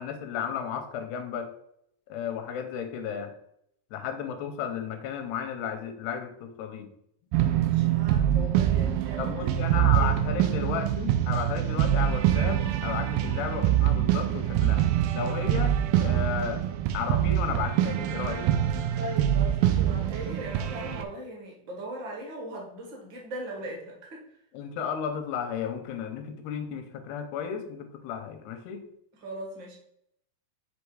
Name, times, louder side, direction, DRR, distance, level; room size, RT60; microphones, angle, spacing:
voice 1, 0.0-1.5 2.1-3.3 3.9-6.9 9.2-18.5 24.5-28.9, left 7 dB, 85° left, 7 dB, 2.8 m, -34 dB
sound 1, 7.3-21.1, right 11 dB, 80° right, 2.1 m, -25 dB
voice 2, 7.6-10.2 19.0-24.2 29.2-29.8, right 1 dB, 45° right, -1 dB, 1.6 m, -39 dB
8.2 x 3.4 x 4.8 m, 0.73 s
omnidirectional pair, 4.5 m